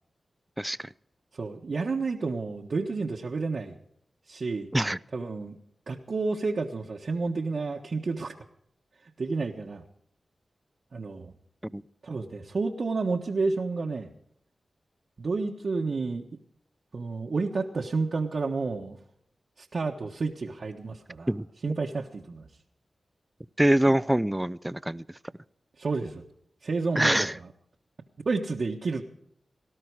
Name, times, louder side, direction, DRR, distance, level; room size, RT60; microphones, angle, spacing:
voice 1, 1.3-3.8 4.3-4.7 5.1-5.6 5.9-8.3 9.2-9.8 10.9-11.3 12.0-14.1 15.2-16.2 16.9-19.0 19.6-21.3 21.6-22.5 25.8-26.2 26.6-27.5 28.2-29.0, right 4 dB, 65° right, 0 dB, 1.4 m, -30 dB
voice 2, 21.3-21.8 23.6-25.0 26.9-27.3, right 1 dB, 10° right, 18 dB, 0.6 m, -24 dB
18.5 x 12.5 x 4.8 m, 0.71 s
cardioid pair, 45°, 0 cm